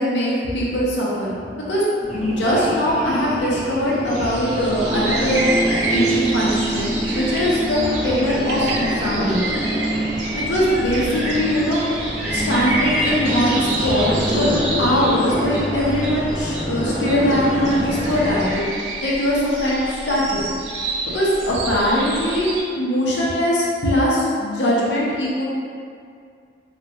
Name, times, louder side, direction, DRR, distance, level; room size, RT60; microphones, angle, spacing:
voice 1, 0.0-1.8 2.1-5.4 5.9-9.4 10.3-12.0 12.3-14.5 14.8-18.7 19.0-20.5 21.1-22.5 22.8-25.4, equal, 75° left, -5 dB, 0.6 m, -21 dB
sound 1, 2.0-18.5, right 1 dB, 5° right, 0.7 m, -25 dB
sound 2, 4.1-22.6, right 2 dB, 85° right, 0.4 m, -29 dB
2.7 x 2.1 x 2.3 m, 2.2 s
head